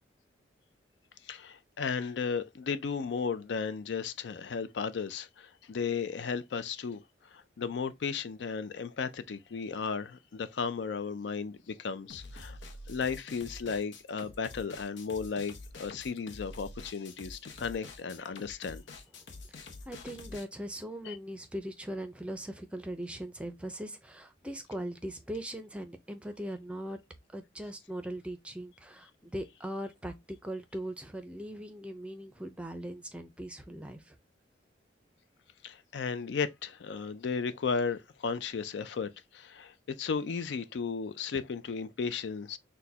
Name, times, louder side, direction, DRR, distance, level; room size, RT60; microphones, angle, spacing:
voice 1, 1.3-7.0 7.3-12.6 12.9-18.8 21.0-21.2 35.6-42.6, left 5 dB, 70° left, 0.4 m, -35 dB
sound 1, 12.1-20.4, left 3 dB, 85° left, 0.8 m, -47 dB
voice 2, 19.9-27.0 27.3-34.1, right 1 dB, 5° right, 0.5 m, -40 dB
6.1 x 2.2 x 2.7 m
head